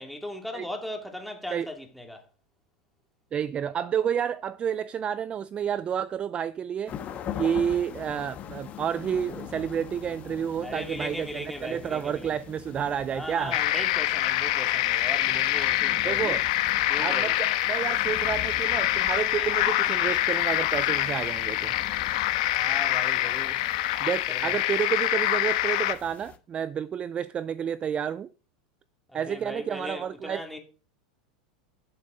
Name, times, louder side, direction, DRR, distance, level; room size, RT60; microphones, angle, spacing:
voice 1, 0.0-2.2 10.6-12.4 13.1-16.4 16.9-17.4 22.5-23.6 24.3-24.6 29.1-30.6, left 1 dB, ahead, 2.7 m, -38 dB
voice 2, 3.3-6.9 7.4-13.6 15.3-15.4 16.0-16.4 17.0-21.7 24.0-28.3 29.1-30.6, right 8 dB, 30° right, 0.4 m, -30 dB
sound 1, 6.9-26.4, left 10 dB, 35° left, 1.4 m, -43 dB
sound 2, 13.5-25.9, left 15 dB, 65° left, 1.2 m, -25 dB
11.0 x 7.6 x 5.1 m
hypercardioid pair, 95°, 4 cm